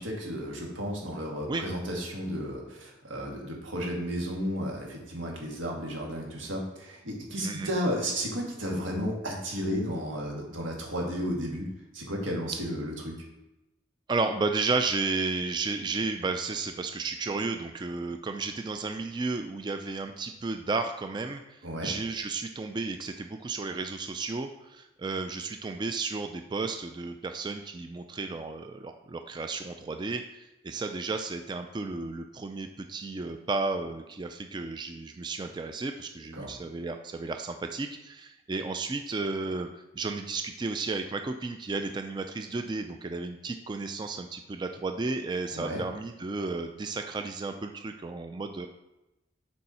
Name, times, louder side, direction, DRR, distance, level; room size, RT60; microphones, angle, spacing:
voice 1, 0.0-13.2 21.6-21.9 36.3-36.5 45.5-45.8, equal, 90° right, -1 dB, 1.8 m, -33 dB
voice 2, 14.1-39.7 39.9-48.7, right 3 dB, 25° right, 6 dB, 0.3 m, -33 dB
6.7 x 4.6 x 4.3 m, 0.97 s
head